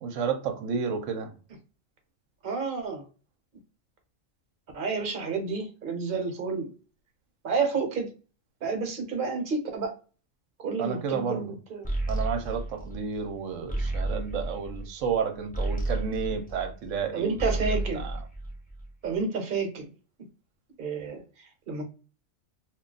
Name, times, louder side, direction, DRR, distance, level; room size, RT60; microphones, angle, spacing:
voice 1, 0.0-1.3 10.8-11.5 12.1-18.2, right 6 dB, 80° right, 1.0 m, -31 dB
voice 2, 2.4-3.0 4.7-6.7 7.4-8.1 8.6-9.9 10.6-11.9 17.1-18.0 19.0-19.8 20.8-21.2 21.7-21.8, right 4 dB, 45° right, 0.9 m, -30 dB
sound 1, 11.8-17.0 17.3-19.0, right 2 dB, 10° left, 0.4 m, -32 dB
2.4 x 2.2 x 3.8 m
omnidirectional pair, 1.4 m